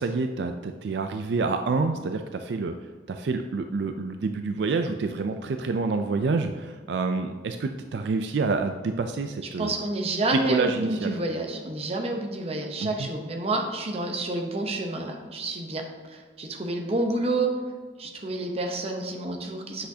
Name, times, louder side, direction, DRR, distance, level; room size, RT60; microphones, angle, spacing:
voice 1, 0.0-2.8 3.1-9.7 10.3-11.2 12.8-13.1, right 4 dB, 70° right, 7 dB, 0.4 m, -28 dB
voice 2, 9.6-17.5 18.0-19.9, right 2 dB, 35° right, 2 dB, 0.8 m, -29 dB
7.9 x 6.3 x 2.8 m, 1.4 s
head